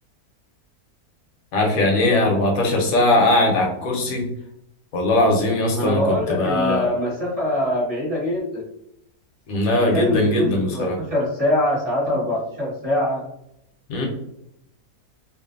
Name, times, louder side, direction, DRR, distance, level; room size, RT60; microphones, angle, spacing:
voice 1, 1.5-4.2 4.9-6.9 9.5-11.0 13.9-14.1, left 1 dB, 70° left, 1 dB, 1.0 m, -20 dB
voice 2, 5.7-8.6 9.9-13.2, left 1 dB, 30° right, -6 dB, 0.7 m, -24 dB
2.5 x 2.5 x 2.4 m, 0.77 s
omnidirectional pair, 1.7 m